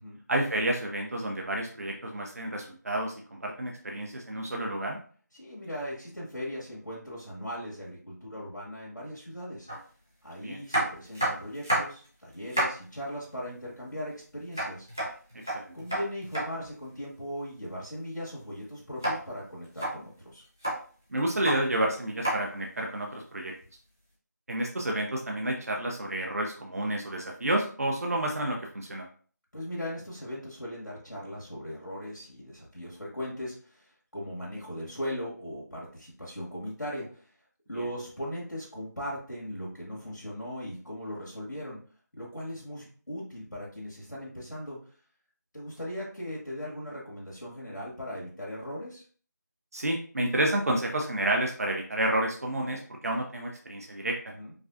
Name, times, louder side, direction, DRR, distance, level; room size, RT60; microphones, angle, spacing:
voice 1, 0.3-5.0 10.4-10.6 15.5-15.7 21.1-23.5 24.5-29.1 49.7-54.2, right 1 dB, 55° right, 0 dB, 0.6 m, -30 dB
voice 2, 5.3-9.7 10.2-14.9 15.7-20.4 29.5-37.3 37.7-41.8 42.1-44.8 45.5-49.0 54.3-54.5, equal, 85° left, -5 dB, 1.6 m, -38 dB
sound 1, 9.7-9.8 10.7-12.1 12.3-12.8 14.5-16.5 19.0-19.2 19.6-19.9 20.4-20.8 21.3-21.6 22.2-22.4 23.6-23.7, right 1 dB, 10° right, 0.4 m, -29 dB
4.8 x 2.3 x 2.5 m, 0.43 s
figure-of-eight pair, 170°, 10 cm